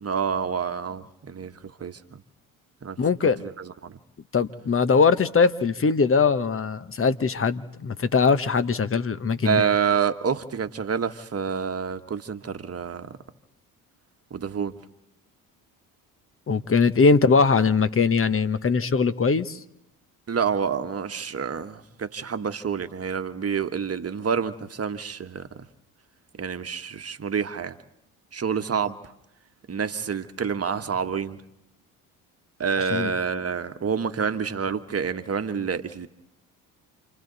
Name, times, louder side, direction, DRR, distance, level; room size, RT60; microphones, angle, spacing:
voice 1, 0.0-2.2 2.8-4.0 9.4-13.2 14.3-14.8 20.3-25.5 26.4-27.8 28.3-29.0 29.7-31.4 32.6-36.1, right 6 dB, 35° right, 9 dB, 1.5 m, -28 dB
voice 2, 3.0-3.4 4.3-9.6 16.5-19.6 32.9-33.1, left 5 dB, 30° left, 13 dB, 1.2 m, -21 dB
28.5 x 26.0 x 4.1 m, 0.86 s
hypercardioid pair, 60°, 43 cm